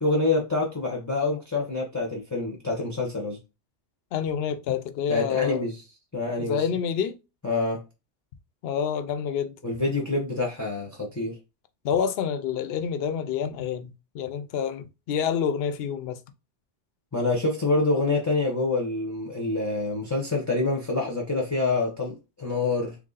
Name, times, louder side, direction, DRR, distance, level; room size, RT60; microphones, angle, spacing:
voice 1, 0.0-3.4 5.1-5.8 6.1-6.7 7.4-7.8 9.6-11.4 17.1-23.0, left 3 dB, 20° left, 0.6 m, -26 dB
voice 2, 4.1-5.7 6.4-7.2 8.6-9.5 11.8-16.2, left 7 dB, 65° left, 0.7 m, -28 dB
3.0 x 2.7 x 3.8 m
omnidirectional pair, 1.3 m